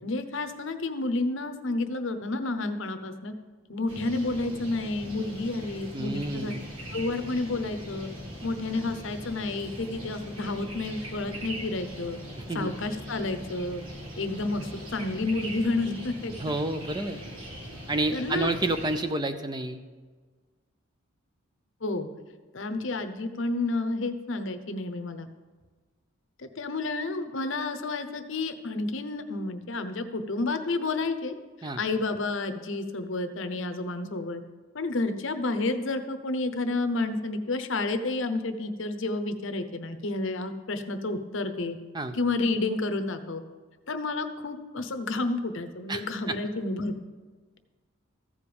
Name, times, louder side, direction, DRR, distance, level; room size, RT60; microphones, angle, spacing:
voice 1, 0.0-3.3 3.7-6.5 6.9-8.1 8.4-12.2 12.5-13.8 14.2-16.3 18.1-18.6 21.8-22.1 22.5-25.3 26.4-31.3 31.8-34.4 34.7-41.8 42.1-43.4 43.9-46.9, left 2 dB, 60° left, 9 dB, 0.8 m, -30 dB
sound 1, 3.9-19.0, equal, 80° right, 2.2 m, -41 dB
voice 2, 5.9-6.7 12.5-12.7 16.4-17.2 17.9-19.8 31.6-31.8 41.9-42.2 45.9-46.3, right 2 dB, 20° right, 8 dB, 0.5 m, -29 dB
14.5 x 5.0 x 7.0 m, 1.4 s
head